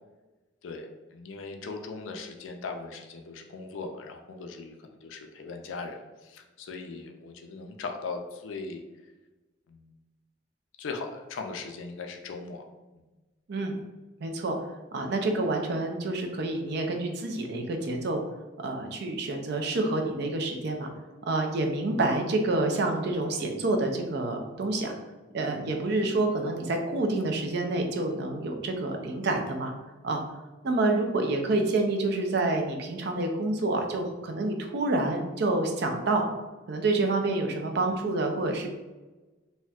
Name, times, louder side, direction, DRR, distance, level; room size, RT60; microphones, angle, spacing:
voice 1, 0.6-8.8 9.7-9.8 10.8-12.7, left 4 dB, 80° left, 4 dB, 0.4 m, -39 dB
voice 2, 14.2-14.6 14.9-18.2 18.6-20.9 21.3-24.9 25.3-29.7 30.0-30.2 30.6-36.2 36.7-38.7, right 2 dB, 60° right, 3 dB, 0.5 m, -28 dB
4.1 x 2.2 x 2.3 m, 1.2 s
head